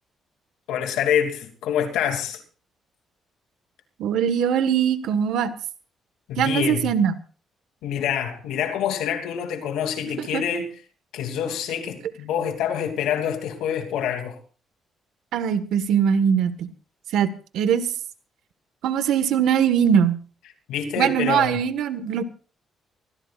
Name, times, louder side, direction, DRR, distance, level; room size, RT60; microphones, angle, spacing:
voice 1, 0.7-2.4 6.3-6.9 7.8-10.7 11.1-14.4 20.7-21.6, left 8 dB, 90° left, 2.8 m, -26 dB
voice 2, 4.0-5.5 6.4-7.1 10.2-10.4 15.3-16.7 17.1-17.9 18.8-20.2 21.0-22.2, right 8 dB, 80° right, 1.5 m, -21 dB
24.0 x 16.0 x 2.5 m
cardioid pair, 90°, 0 cm